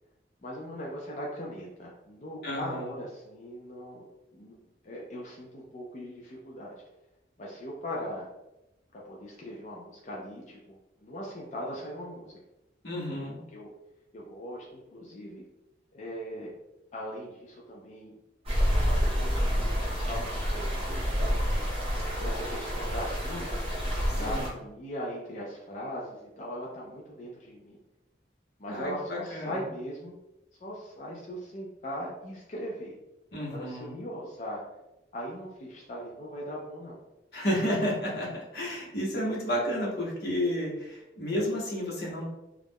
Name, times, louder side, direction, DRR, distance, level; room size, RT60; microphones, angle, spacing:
voice 1, 0.4-4.5 4.8-6.7 7.4-8.3 8.9-12.4 13.5-13.7 14.1-15.4 15.9-16.5 16.9-18.1 18.5-21.4 22.2-23.6 24.1-27.8 28.6-30.2 30.6-32.9 33.4-34.6 35.1-37.0 37.5-37.9, equal, 40° left, -3 dB, 0.4 m, -39 dB
voice 2, 2.4-2.8 12.8-13.4 24.2-24.4 28.7-29.5 33.3-34.0 37.3-42.3, equal, 60° left, -4 dB, 0.9 m, -31 dB
sound 1, 18.5-24.5, equal, 30° right, 0.7 m, -28 dB
2.4 x 2.0 x 3.4 m, 0.94 s
head